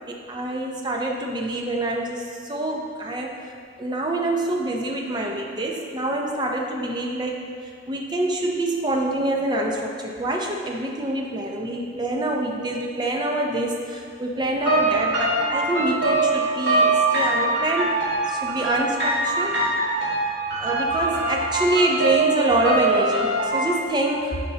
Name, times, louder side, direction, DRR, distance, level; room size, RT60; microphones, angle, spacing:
voice 1, 0.1-2.2 2.5-3.3 3.8-7.4 7.9-18.0 18.3-19.6 20.5-24.4, right 2 dB, 20° right, 0 dB, 0.6 m, -26 dB
sound 1, 14.6-23.7, right 2 dB, 60° right, 1.6 m, -23 dB
10.5 x 4.3 x 2.8 m, 2.3 s
head